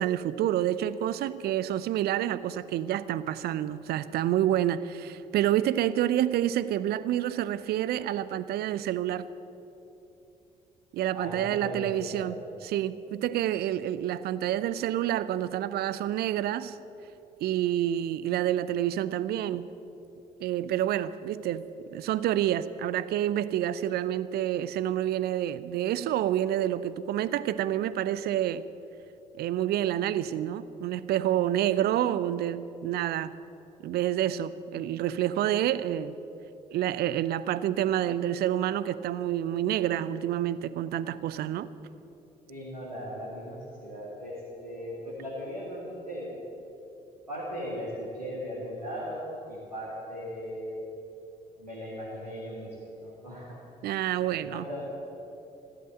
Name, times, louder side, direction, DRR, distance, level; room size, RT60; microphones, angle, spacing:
voice 1, 0.0-9.3 10.9-12.3 12.6-16.8 17.4-19.6 20.4-21.6 21.9-28.6 29.3-33.3 33.8-36.1 36.7-41.7 53.8-54.6, right 12 dB, 55° right, 16 dB, 0.6 m, -28 dB
voice 2, 11.1-12.3 42.5-46.3 47.3-50.8 51.6-53.6 54.3-54.9, equal, 90° right, -7 dB, 2.1 m, -38 dB
14.5 x 12.5 x 7.6 m, 2.9 s
figure-of-eight pair, 45°, 20 cm